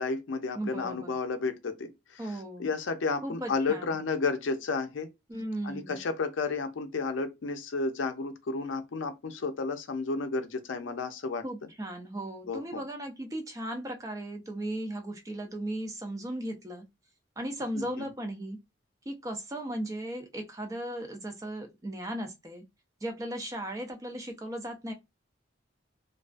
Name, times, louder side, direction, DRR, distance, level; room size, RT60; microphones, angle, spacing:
voice 1, 0.0-2.2 2.6-5.1 5.6-11.4 12.5-12.8 17.8-18.1, left 4 dB, 75° left, 0.5 m, -32 dB
voice 2, 0.5-1.1 2.2-2.7 3.2-4.0 5.3-6.0 11.4-16.9 17.4-18.6 19.1-22.6 23.0-24.9, right 1 dB, 15° right, 0.4 m, -36 dB
2.3 x 2.3 x 2.4 m
head